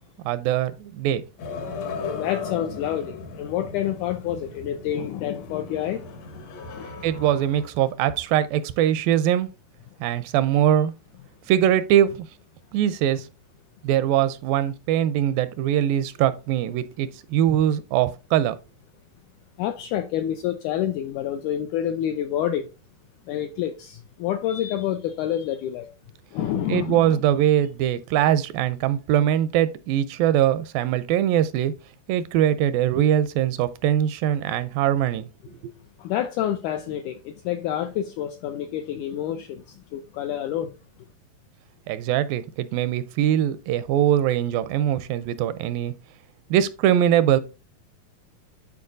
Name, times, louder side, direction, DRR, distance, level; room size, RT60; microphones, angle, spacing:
voice 1, 0.3-1.2 7.0-9.5 10.0-10.9 11.5-12.3 12.7-13.2 13.8-18.6 26.7-31.7 32.1-35.3 35.6-35.7 41.9-45.9 46.5-47.4, right 11 dB, 85° right, 2.3 m, -22 dB
sound 1, 1.4-7.7, left 4 dB, 65° left, 1.8 m, -36 dB
voice 2, 2.0-6.0 6.8-6.9 19.6-22.7 23.3-25.9 26.3-27.2 36.0-40.7, left 11 dB, 85° left, 1.8 m, -28 dB
11.0 x 4.2 x 2.6 m
omnidirectional pair, 4.1 m